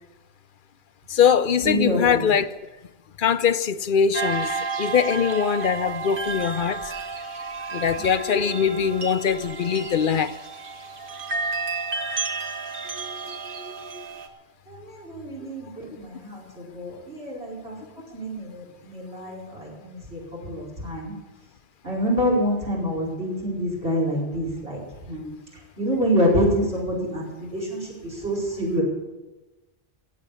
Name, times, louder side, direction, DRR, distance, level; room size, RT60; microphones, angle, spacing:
voice 1, 1.1-2.5 3.2-6.9 7.7-10.4 15.4-15.5, left 7 dB, 60° left, 0.7 m, -22 dB
voice 2, 1.6-2.3 8.2-8.6 12.8-14.0 14.7-17.8 18.1-21.1 21.8-25.3 25.8-28.8, equal, 80° right, 5.3 m, -27 dB
sound 1, 4.1-14.3, right 4 dB, 55° right, 1.5 m, -31 dB
17.0 x 7.9 x 8.4 m
omnidirectional pair, 1.0 m